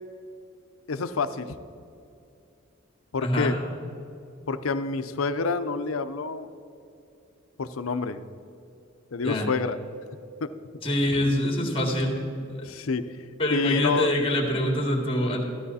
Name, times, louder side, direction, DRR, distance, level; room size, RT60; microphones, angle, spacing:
voice 1, 0.9-1.6 3.1-3.6 4.5-6.5 7.6-8.2 9.1-9.8 10.4-10.5 12.6-13.0 13.5-14.1, left 4 dB, 80° left, 11 dB, 0.6 m, -28 dB
voice 2, 3.2-3.6 9.2-9.5 10.8-12.7 13.4-15.4, left 1 dB, 25° left, 1 dB, 2.1 m, -25 dB
13.5 x 13.0 x 4.2 m, 2.7 s
head